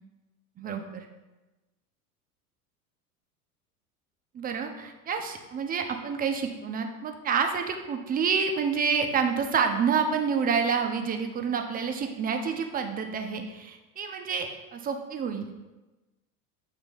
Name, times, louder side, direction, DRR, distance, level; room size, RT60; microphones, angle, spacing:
voice 1, 0.6-1.1 4.3-15.5, right 6 dB, 20° right, 4 dB, 0.6 m, -28 dB
7.3 x 2.9 x 5.3 m, 1.1 s
figure-of-eight pair, 80°, 46 cm